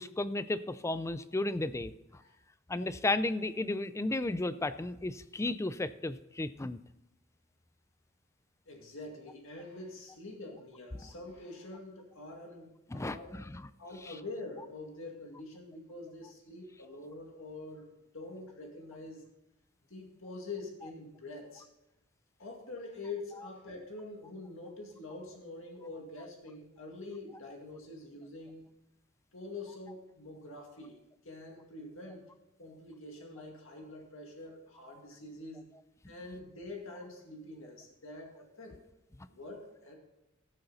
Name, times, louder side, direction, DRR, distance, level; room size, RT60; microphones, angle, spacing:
voice 1, 0.0-1.9 2.7-6.8 12.9-13.7, left 2 dB, 15° left, 13 dB, 0.4 m, -33 dB
voice 2, 8.7-13.3 13.8-19.2 19.9-21.6 22.4-28.6 29.3-31.0 31.2-32.3 32.6-35.7 36.0-38.8 39.3-40.0, left 2 dB, 65° left, 1 dB, 2.2 m, -45 dB
15.0 x 6.9 x 4.0 m, 0.95 s
head